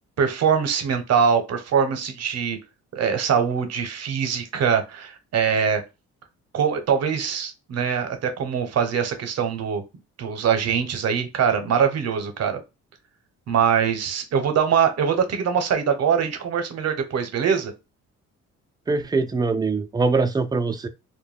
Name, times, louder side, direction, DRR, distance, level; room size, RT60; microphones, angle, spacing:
voice 1, 0.2-2.6 2.9-5.8 6.5-9.8 10.2-12.6 13.5-17.7, right 7 dB, 55° right, 0.7 m, -23 dB
voice 2, 18.9-20.9, right 3 dB, 15° right, 0.3 m, -23 dB
2.2 x 2.1 x 3.2 m
cardioid pair, 90°, 30 cm